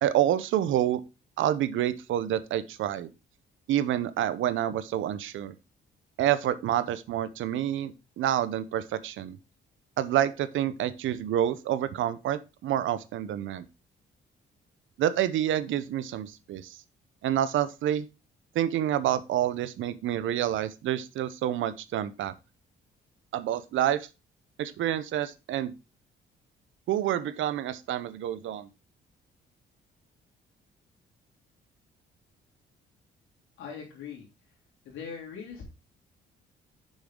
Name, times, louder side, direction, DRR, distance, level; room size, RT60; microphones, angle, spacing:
voice 1, 0.0-1.0 1.4-3.1 3.7-5.5 6.2-9.4 10.0-13.6 15.0-16.8 17.2-18.1 18.5-22.3 23.3-24.1 24.6-25.7 26.9-28.7, right 11 dB, 75° right, 14 dB, 0.7 m, -28 dB
voice 2, 33.6-34.3 34.8-35.6, left 6 dB, 85° left, -1 dB, 3.3 m, -40 dB
6.5 x 6.4 x 3.7 m, 0.28 s
cardioid pair, 90°, 20 cm